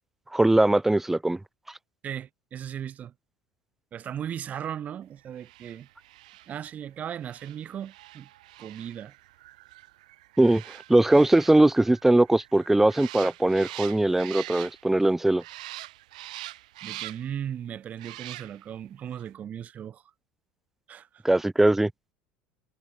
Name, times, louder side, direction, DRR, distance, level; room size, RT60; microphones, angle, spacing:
voice 1, 0.3-1.4 10.4-10.6 10.9-15.4 21.2-21.9, right 1 dB, 5° right, 0.6 m, -20 dB
voice 2, 2.0-3.1 3.9-5.9 6.5-8.3 8.6-9.1 16.8-20.0 20.9-21.2, right 9 dB, 40° right, 2.5 m, -37 dB
sound 1, 5.3-15.1 15.4-17.4 17.9-18.8 19.1-19.3, right 17 dB, 90° right, 1.1 m, -44 dB
supercardioid pair, 95°, 4 cm